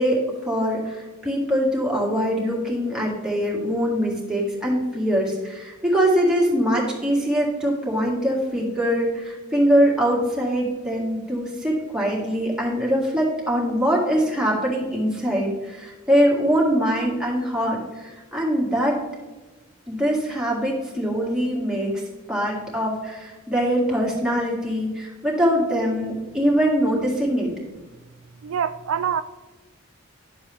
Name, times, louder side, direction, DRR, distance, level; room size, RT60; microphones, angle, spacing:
voice 1, 0.0-19.0 19.9-22.0 22.3-27.5, equal, 5° right, 1.9 m, -23 dB
voice 2, 28.4-29.2, right 8 dB, 75° right, 0.3 m, -25 dB
10.5 x 7.0 x 3.4 m
head